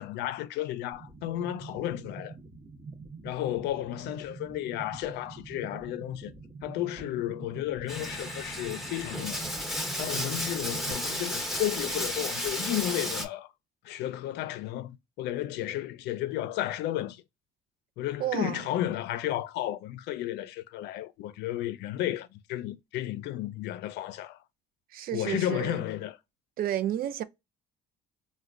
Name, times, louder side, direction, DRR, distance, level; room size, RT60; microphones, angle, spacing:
voice 1, 0.0-2.4 3.2-6.3 6.6-9.5 10.0-13.5 13.8-17.2 18.0-24.4 25.1-26.2, left 13 dB, 85° left, 0.4 m, -33 dB
sound 1, 0.9-10.9, right 4 dB, 30° right, 0.8 m, -45 dB
Bathtub (filling or washing), 7.9-13.3, equal, ahead, 0.8 m, -33 dB
voice 2, 18.2-18.6 24.9-25.8 26.6-27.2, right 12 dB, 60° right, 0.4 m, -31 dB
4.4 x 2.1 x 2.4 m
cardioid pair, 110°, 17 cm